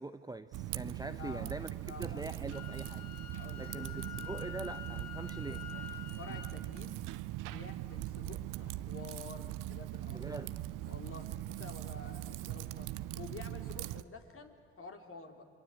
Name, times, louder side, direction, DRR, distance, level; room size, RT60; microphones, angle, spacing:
voice 1, 0.0-1.7 2.0-3.1 3.6-5.6 10.1-10.6, right 2 dB, 10° right, 10 dB, 0.9 m, -43 dB
Typing, 0.5-14.0, right 15 dB, 75° right, 0.7 m, -41 dB
voice 2, 1.1-2.4 3.4-3.9 6.2-7.0 7.4-10.5 10.9-15.4, left 4 dB, 40° left, 4 dB, 3.5 m, -50 dB
Wind instrument woodwind instrument, 2.5-6.5, left 10 dB, 85° left, 2.0 m, -47 dB
27.0 x 23.5 x 8.5 m, 2.4 s
supercardioid pair, 65°, 32 cm